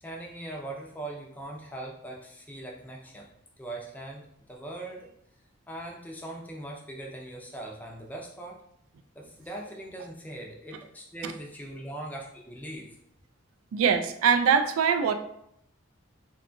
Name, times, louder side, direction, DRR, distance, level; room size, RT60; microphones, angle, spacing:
voice 1, 0.0-3.3 3.6-4.2 4.5-5.1 5.7-8.6 9.2-13.0, right 1 dB, 10° left, -1 dB, 0.4 m, -40 dB
voice 2, 13.7-15.1, right 6 dB, 90° right, 9 dB, 0.3 m, -23 dB
2.8 x 2.2 x 2.5 m, 0.74 s
head